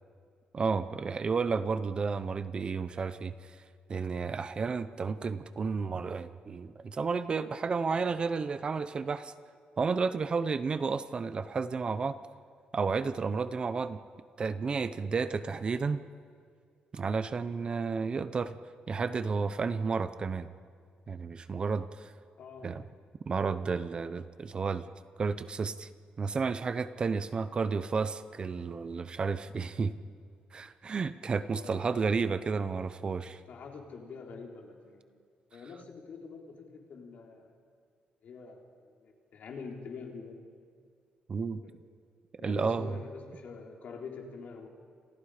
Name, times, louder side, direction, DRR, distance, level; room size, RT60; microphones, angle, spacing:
voice 1, 0.5-3.5 3.9-9.3 9.8-12.2 12.7-14.0 14.4-16.0 16.9-18.5 18.9-20.5 21.1-22.1 22.6-22.8 23.3-24.9 25.2-25.9 26.2-29.9 30.5-33.4 41.3-41.6 42.4-42.9, right 5 dB, 30° right, 12 dB, 0.8 m, -32 dB
voice 2, 22.4-22.7 31.5-31.8 33.5-35.0 35.5-37.6 38.2-40.4 41.6-41.8 42.4-44.7, left 5 dB, 55° left, 1 dB, 3.8 m, -45 dB
29.5 x 27.0 x 5.0 m, 2.2 s
cardioid pair, 165°, 3 cm